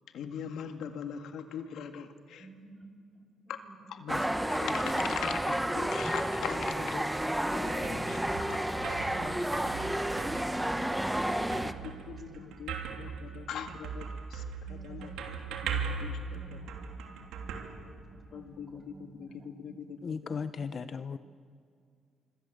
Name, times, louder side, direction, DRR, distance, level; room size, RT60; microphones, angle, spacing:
voice 1, 0.1-2.5 3.5-3.6 3.9-7.3 7.5-8.2 8.5-8.6 8.9-9.0 11.4-11.5 12.1-14.4 14.7-16.6 18.3-20.2, left 8 dB, 75° left, 7 dB, 1.9 m, -41 dB
voice 2, 2.4-3.9 7.4-13.8 14.7-20.0 20.3-20.7, right 1 dB, 30° right, 6 dB, 4.8 m, -53 dB
sound 1, 4.1-11.7, right 1 dB, 5° right, 1.1 m, -31 dB
sound 2, 7.3-18.5, right 6 dB, 85° right, 3.1 m, -40 dB
voice 3, 20.0-21.2, left 5 dB, 45° left, 12 dB, 0.8 m, -36 dB
26.0 x 25.5 x 7.9 m, 2.3 s
cardioid pair, 90°, 0 cm